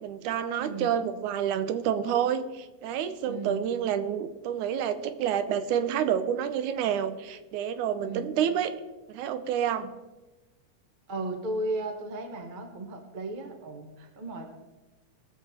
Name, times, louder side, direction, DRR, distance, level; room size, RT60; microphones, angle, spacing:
voice 1, 0.0-8.7 9.1-9.9, right 9 dB, 85° right, 11 dB, 2.2 m, -28 dB
voice 2, 0.6-1.0 3.3-3.7 8.0-8.3 11.1-14.5, right 2 dB, 65° right, 4 dB, 0.4 m, -35 dB
19.0 x 6.9 x 4.3 m, 1.1 s
omnidirectional pair, 3.4 m